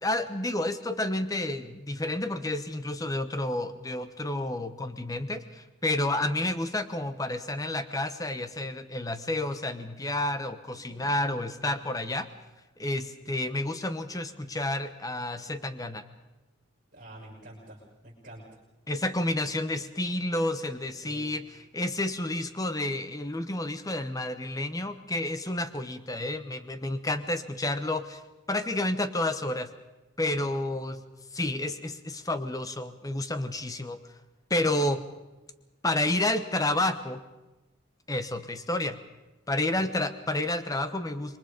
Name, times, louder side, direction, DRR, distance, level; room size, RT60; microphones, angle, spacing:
voice 1, 0.0-12.3 12.8-16.0 18.9-21.4 21.7-28.2 28.5-29.7 30.2-31.0 31.3-34.0 34.5-35.0 35.8-37.2 38.1-39.0 39.5-41.4, left 1 dB, 15° left, 11 dB, 1.0 m, -30 dB
voice 2, 16.9-18.6 21.0-21.3 39.7-40.0, right 1 dB, 40° right, -7 dB, 6.3 m, -48 dB
27.0 x 22.5 x 5.2 m, 1.1 s
head